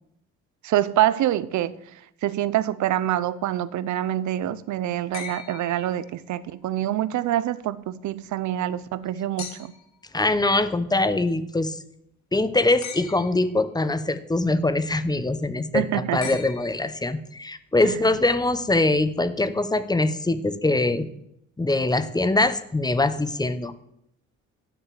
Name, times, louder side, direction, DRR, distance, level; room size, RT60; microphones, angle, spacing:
voice 1, 0.6-1.7 2.2-9.7 15.7-16.2 17.8-18.0, right 12 dB, 70° right, 0.6 m, -25 dB
sound 1, 5.1-6.5 9.4-10.0 12.8-13.6 16.2-17.2 18.8-18.9, left 7 dB, 65° left, 1.7 m, -40 dB
voice 2, 10.1-11.8 12.3-21.1 21.6-23.7, left 2 dB, 15° left, 0.8 m, -23 dB
9.6 x 6.9 x 7.4 m
cardioid pair, 90°, 30 cm